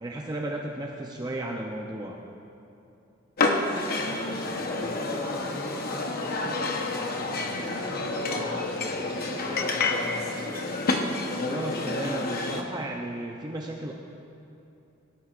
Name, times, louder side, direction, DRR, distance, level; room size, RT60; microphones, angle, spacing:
voice 1, 0.0-2.2 11.4-13.9, right 1 dB, 20° right, 0 dB, 0.6 m, -34 dB
sound 1, 3.4-12.6, left 3 dB, 50° left, 1.0 m, -29 dB
voice 2, 3.8-10.4, equal, 15° left, -3 dB, 1.7 m, -41 dB
18.5 x 12.5 x 2.5 m, 2.7 s
head